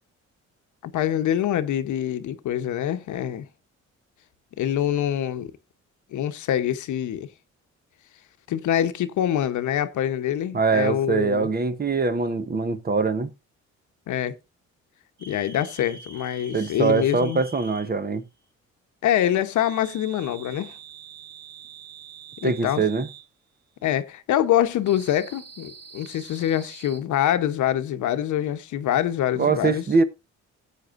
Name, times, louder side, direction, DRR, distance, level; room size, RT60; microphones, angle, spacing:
voice 1, 0.8-3.5 4.6-5.5 6.1-7.3 8.5-11.5 14.1-14.3 15.2-17.4 19.0-20.7 22.4-22.8 23.8-29.8, left 11 dB, 75° left, 1.0 m, -25 dB
voice 2, 10.5-13.3 16.5-18.2 22.4-23.1 29.4-30.0, right 4 dB, 30° right, 1.1 m, -23 dB
sound 1, 15.2-17.9 19.6-23.3 24.8-27.0, right 5 dB, 55° right, 3.0 m, -45 dB
15.0 x 8.4 x 2.5 m
cardioid pair, 90°, 30 cm